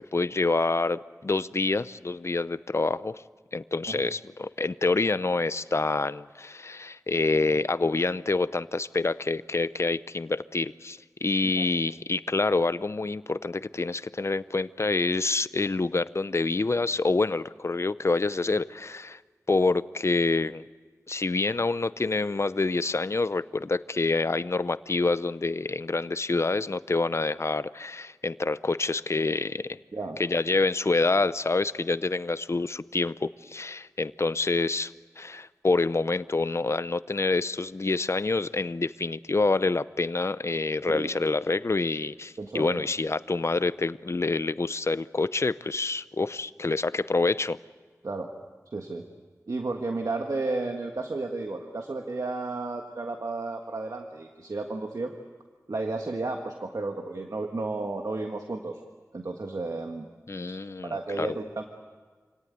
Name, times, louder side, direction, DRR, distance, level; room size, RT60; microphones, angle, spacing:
voice 1, 0.0-3.2 3.5-19.2 19.5-20.6 21.1-29.8 30.2-47.6 60.3-61.4, left 3 dB, 50° left, 15 dB, 0.6 m, -27 dB
voice 2, 42.4-42.9 48.0-48.3 48.7-49.1 49.5-55.1 55.7-58.8 59.1-60.1 60.8-61.6, right 3 dB, 75° right, 3 dB, 1.6 m, -32 dB
26.5 x 18.0 x 9.5 m, 1.5 s
wide cardioid pair, 60°, 6 cm